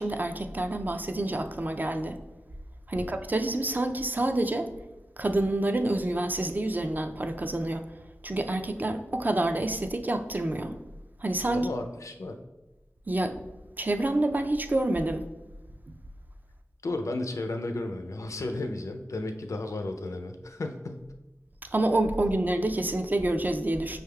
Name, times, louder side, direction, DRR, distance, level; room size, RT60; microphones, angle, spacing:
voice 1, 0.0-2.2 2.9-4.7 5.2-7.9 8.2-10.8 11.2-11.7 13.1-13.4 13.8-15.3 21.7-24.0, right 1 dB, 35° right, 6 dB, 0.3 m, -28 dB
voice 2, 11.5-12.3 16.8-21.1, left 2 dB, 85° left, 5 dB, 0.4 m, -33 dB
5.4 x 3.4 x 2.2 m, 1.0 s
wide cardioid pair, 60°, 5 cm